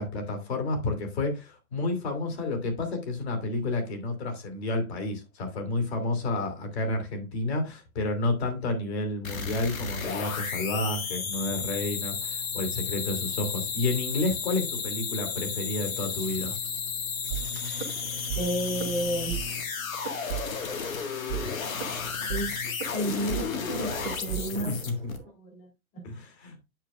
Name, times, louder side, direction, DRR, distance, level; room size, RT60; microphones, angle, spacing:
voice 1, 0.0-16.6 24.5-25.1 26.0-26.5, left 2 dB, 45° left, 2.9 m, -30 dB
sound 1, 9.2-25.2, left 6 dB, 70° left, 1.8 m, -33 dB
sound 2, 17.3-18.4 18.7-18.9 19.3-19.4 19.9-20.9 21.3-25.3, right 11 dB, 40° right, 1.4 m, -36 dB
voice 2, 18.3-19.6 22.3-22.5 22.9-24.8 25.4-25.7 25.9-26.0, equal, 20° left, 1.9 m, -31 dB
9.1 x 6.7 x 2.4 m
hypercardioid pair, 165°, 43 cm